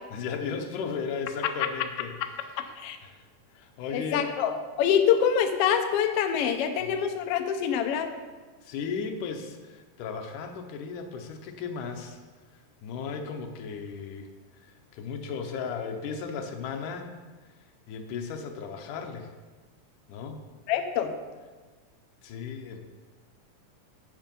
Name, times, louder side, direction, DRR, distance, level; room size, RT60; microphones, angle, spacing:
voice 1, 0.1-2.1 3.0-3.3 3.5-4.3 6.8-6.9 8.6-12.2 12.5-14.3 14.6-17.1 17.9-19.3 20.1-20.4 22.2-22.9, left 5 dB, 90° left, 4 dB, 2.5 m, -36 dB
voice 2, 3.9-8.1 20.7-21.1, left 8 dB, 70° left, 6 dB, 1.5 m, -25 dB
10.0 x 7.7 x 5.4 m, 1.4 s
omnidirectional pair, 3.5 m